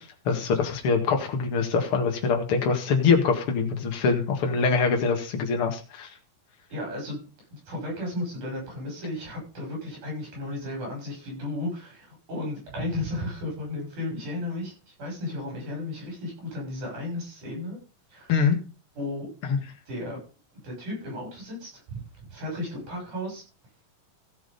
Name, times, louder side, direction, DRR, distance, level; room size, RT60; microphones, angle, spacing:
voice 1, 0.3-6.1 18.3-18.6 19.5-19.6, left 5 dB, 45° left, 3 dB, 2.4 m, -24 dB
voice 2, 6.7-7.2 7.5-17.8 18.1-18.3 18.9-19.3 19.9-20.2 20.6-23.4, left 1 dB, 65° right, -1 dB, 8.2 m, -34 dB
15.0 x 6.2 x 5.4 m, 0.34 s
omnidirectional pair, 3.8 m